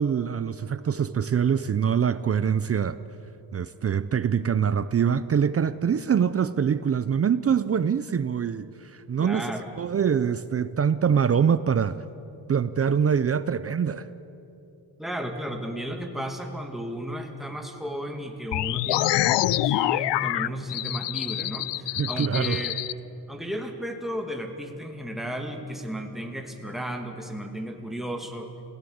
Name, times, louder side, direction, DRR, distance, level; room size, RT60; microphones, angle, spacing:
voice 1, 0.0-3.0 3.5-9.5 9.8-12.0 12.5-14.1 22.0-22.6, right 7 dB, 35° right, 0.6 m, -24 dB
voice 2, 9.2-9.7 15.0-22.8 23.3-28.5, equal, ahead, 2.2 m, -34 dB
sound 1, 18.5-22.9, left 15 dB, 75° left, 0.5 m, -26 dB
27.5 x 16.5 x 8.0 m
cardioid pair, 135°, 42 cm